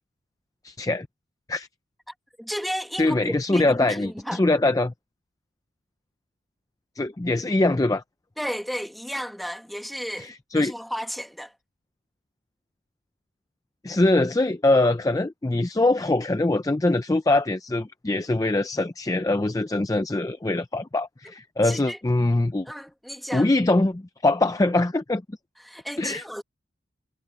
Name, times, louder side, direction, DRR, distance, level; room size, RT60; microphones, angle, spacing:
voice 1, 0.6-1.1 1.5-1.7 3.0-4.9 7.0-8.0 10.2-10.7 13.8-22.7 23.3-25.4 26.0-26.2, left 2 dB, 15° left, 0.4 m, -23 dB
voice 2, 2.1-4.4 8.4-11.5 21.6-22.0 22.7-23.5 25.6-26.4, equal, ahead, 1.5 m, -33 dB
head